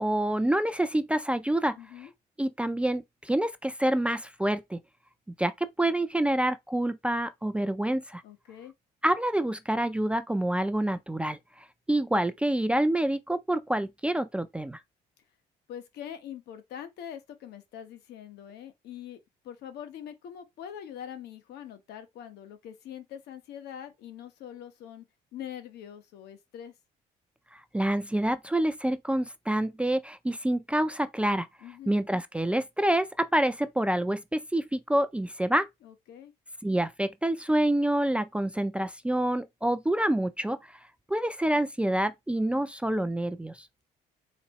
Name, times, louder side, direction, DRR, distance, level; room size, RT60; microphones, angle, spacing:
voice 1, 0.0-1.8 2.4-4.8 5.4-8.2 9.0-11.4 11.9-14.8 27.5-31.5 31.9-35.7 36.6-40.7 41.1-43.7, right 1 dB, 5° right, 0.3 m, -27 dB
voice 2, 1.8-2.1 8.2-8.7 15.7-25.0 25.3-26.7 31.6-32.0 35.8-36.3, left 9 dB, 75° left, 1.0 m, -43 dB
4.1 x 2.7 x 4.2 m
cardioid pair, 110°, 17 cm